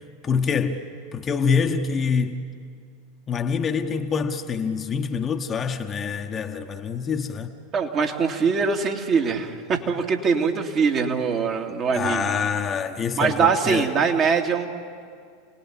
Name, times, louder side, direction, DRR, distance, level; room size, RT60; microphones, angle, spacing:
voice 1, 0.2-0.8 1.1-2.4 3.3-7.5 11.9-13.9, left 6 dB, 25° left, 1.3 m, -25 dB
voice 2, 7.7-12.3 13.2-14.7, right 5 dB, 35° right, 2.5 m, -22 dB
29.5 x 19.5 x 8.9 m
figure-of-eight pair, 85°, 0 cm